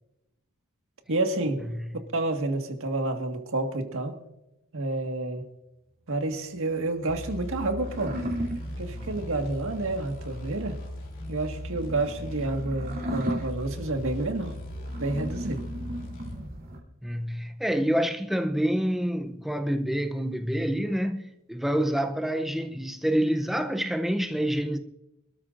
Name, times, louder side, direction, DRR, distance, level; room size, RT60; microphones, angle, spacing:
voice 1, 1.1-1.7 2.1-4.2 4.7-5.4 6.1-8.2 8.8-10.8 11.3-14.5 15.0-15.6, right 2 dB, 65° right, 1.7 m, -29 dB
voice 2, 1.7-2.0 17.0-24.8, equal, ahead, 0.6 m, -27 dB
sound 1, 6.3-16.8, equal, 45° right, 3.0 m, -37 dB
sound 2, 7.1-16.5, left 1 dB, 60° left, 2.7 m, -39 dB
25.0 x 13.5 x 2.6 m
head